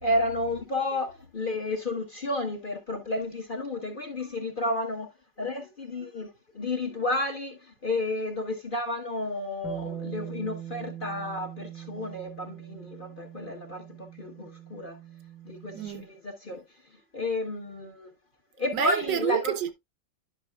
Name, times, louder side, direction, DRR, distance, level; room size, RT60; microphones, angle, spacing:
voice 1, 0.0-5.1 5.4-6.3 6.5-13.8 14.2-15.0 15.4-16.6 17.1-18.1 18.6-19.5, left 2 dB, 35° left, 1.1 m, -31 dB
Bass guitar, 9.6-15.9, right 10 dB, ahead, 0.9 m, -42 dB
voice 2, 15.7-16.1 18.7-19.7, right 10 dB, 75° right, 1.5 m, -29 dB
10.5 x 6.0 x 2.3 m
omnidirectional pair, 1.9 m